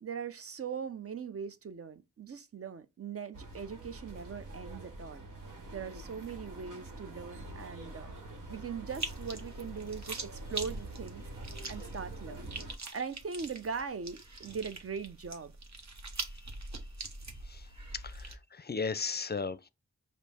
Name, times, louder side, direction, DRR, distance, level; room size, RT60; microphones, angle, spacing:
voice 1, 0.0-5.3 5.7-8.1 8.5-11.2 11.7-12.6 12.9-15.5, right 6 dB, 50° right, 0.6 m, -40 dB
sound 1, 3.3-12.7, right 1 dB, 90° right, 1.1 m, -45 dB
sound 2, 8.9-18.4, right 3 dB, 65° right, 1.0 m, -43 dB
voice 2, 17.4-19.7, left 4 dB, 35° left, 0.5 m, -37 dB
5.1 x 2.1 x 4.1 m
cardioid pair, 40°, 31 cm